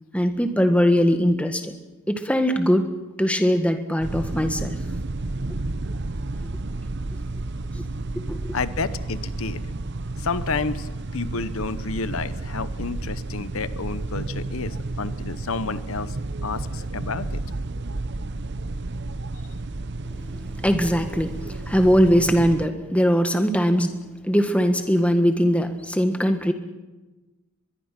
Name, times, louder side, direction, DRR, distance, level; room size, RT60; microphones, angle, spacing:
voice 1, 0.1-1.7 2.1-2.9 3.2-4.8 8.3-8.5 20.3-26.5, equal, 5° left, 7 dB, 1.5 m, -21 dB
sound 1, 4.0-22.7, right 2 dB, 55° right, 0.8 m, -31 dB
voice 2, 8.5-9.6 10.2-16.2 16.4-17.4, left 4 dB, 75° left, 14 dB, 0.9 m, -30 dB
23.5 x 21.5 x 5.9 m, 1.1 s
head